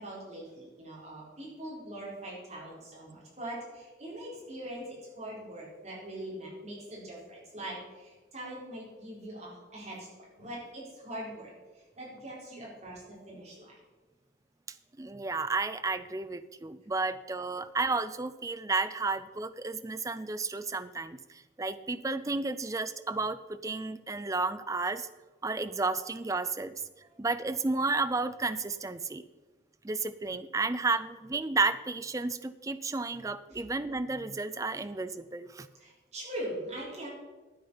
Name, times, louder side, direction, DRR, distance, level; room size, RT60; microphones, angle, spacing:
voice 1, 0.0-11.5 12.0-13.8 27.0-27.1 33.5-33.6 35.8-37.1, right 1 dB, 35° right, -5 dB, 4.2 m, -42 dB
voice 2, 15.0-21.2 21.6-25.1 25.4-26.7 27.2-29.2 29.8-35.7, right 3 dB, 15° right, 12 dB, 0.4 m, -32 dB
12.5 x 8.7 x 5.5 m, 1.2 s
head